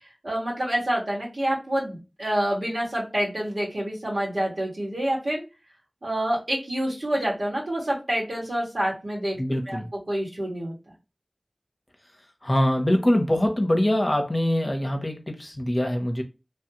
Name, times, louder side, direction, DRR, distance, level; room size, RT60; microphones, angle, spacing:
voice 1, 0.2-5.4 6.0-9.4 9.7-9.8 10.1-10.7, right 1 dB, 85° right, 1.8 m, -27 dB
voice 2, 9.4-9.9 12.4-16.2, left 1 dB, 35° left, 0.8 m, -23 dB
3.2 x 2.3 x 2.9 m
wide cardioid pair, 45°, 0 cm